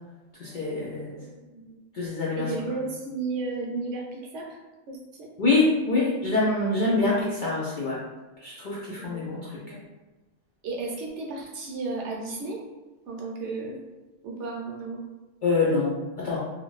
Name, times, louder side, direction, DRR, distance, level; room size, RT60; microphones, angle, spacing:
voice 1, 0.4-1.2 1.9-2.5 5.4-8.0 8.4-9.6 15.4-16.4, left 3 dB, 60° left, -6 dB, 0.5 m, -25 dB
voice 2, 1.1-1.8 2.4-4.6 4.9-5.3 9.0-9.2 9.5-9.8 10.6-12.6 13.1-13.8 14.2-15.0, right 3 dB, 70° right, -1 dB, 0.9 m, -34 dB
2.5 x 2.4 x 3.0 m, 1.2 s
omnidirectional pair, 1.4 m